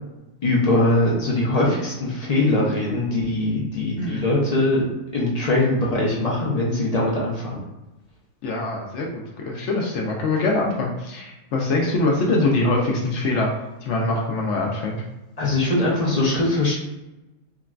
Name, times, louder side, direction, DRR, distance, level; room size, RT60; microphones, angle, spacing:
voice 1, 0.4-4.8 5.1-7.7 15.4-16.7, left 2 dB, 45° left, -4 dB, 0.6 m, -21 dB
voice 2, 4.0-4.3 8.4-13.5 13.8-15.0, left 2 dB, 70° left, -1 dB, 0.8 m, -23 dB
3.8 x 2.1 x 2.4 m, 1.0 s
omnidirectional pair, 1.3 m